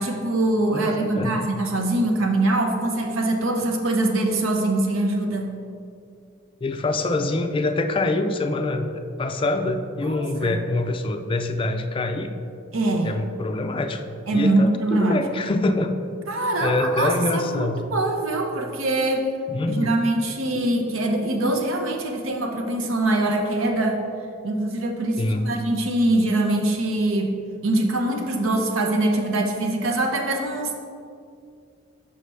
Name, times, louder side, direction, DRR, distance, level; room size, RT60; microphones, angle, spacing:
voice 1, 0.0-5.6 10.0-10.6 12.7-13.1 14.3-15.2 16.3-19.3 19.7-24.0 24.4-27.3 27.6-30.7, right 2 dB, 85° right, 3 dB, 0.8 m, -23 dB
voice 2, 0.7-1.4 6.6-12.4 13.0-15.9 16.6-17.8 19.5-20.0 20.5-20.7 25.2-25.6, left 2 dB, 25° left, 6 dB, 0.3 m, -25 dB
6.6 x 5.7 x 3.2 m, 2.4 s
head